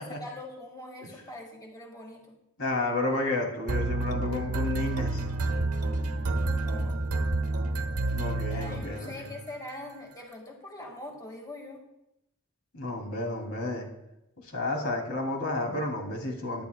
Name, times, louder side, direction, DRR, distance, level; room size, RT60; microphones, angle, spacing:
voice 1, 0.0-2.2 6.3-7.0 8.5-11.8, left 2 dB, 15° left, 0 dB, 2.0 m, -43 dB
voice 2, 2.6-5.2 8.1-9.3 12.7-13.9 14.4-16.6, left 2 dB, 80° left, 1 dB, 2.9 m, -31 dB
sound 1, 3.7-9.4, right 2 dB, 85° right, 1.1 m, -29 dB
22.5 x 10.5 x 2.3 m, 0.85 s
head